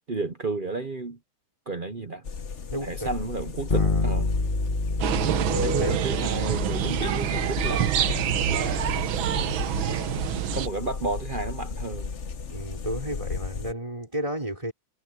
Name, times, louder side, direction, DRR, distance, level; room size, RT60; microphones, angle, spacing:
voice 1, 0.1-1.2 1.7-2.2 2.8-4.3 5.6-9.1 9.8-10.1 10.5-12.1, right 3 dB, 45° right, 0.6 m, -32 dB
sound 1, 2.2-13.7, left 5 dB, 45° left, 1.2 m, -35 dB
voice 2, 2.7-3.1 3.7-4.1 5.2-6.0 12.5-14.7, equal, 15° right, 5.5 m, -33 dB
Bass guitar, 3.7-13.4, left 3 dB, 25° left, 1.6 m, -31 dB
sound 2, 5.0-10.7, right 11 dB, 75° right, 1.7 m, -26 dB
omnidirectional pair, 2.2 m